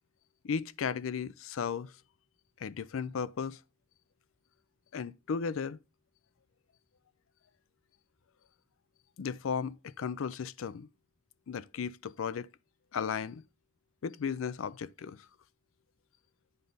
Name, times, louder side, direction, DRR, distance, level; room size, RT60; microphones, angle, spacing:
voice 1, 0.4-1.9 2.6-3.6 4.9-5.8 9.2-10.9 11.5-12.5 12.9-13.4 14.0-15.3, left 6 dB, 75° left, 0.4 m, -35 dB
8.9 x 5.2 x 3.9 m
head